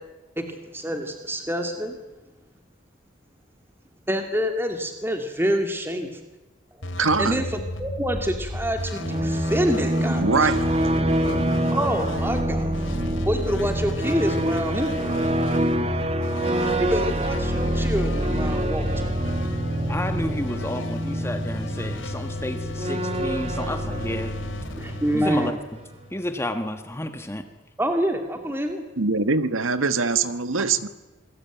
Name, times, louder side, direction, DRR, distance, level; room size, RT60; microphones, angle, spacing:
voice 1, 0.4-2.0 4.1-6.1 6.8-10.5 11.7-12.7 13.3-14.9 16.8-18.9 24.7-25.6 27.8-28.8 30.6-30.7, equal, 10° right, 5 dB, 2.4 m, -27 dB
sound 1, 6.8-26.4, left 1 dB, 75° left, 2.9 m, -33 dB
voice 2, 7.0-7.4 10.0-10.6 29.0-30.9, right 4 dB, 85° right, 12 dB, 1.4 m, -23 dB
sound 2, 8.8-25.4, right 1 dB, 30° right, 1.3 m, -26 dB
voice 3, 19.9-24.3 25.1-25.5 26.1-27.4, left 1 dB, 15° left, 8 dB, 1.4 m, -31 dB
27.5 x 20.0 x 9.2 m, 1.1 s
head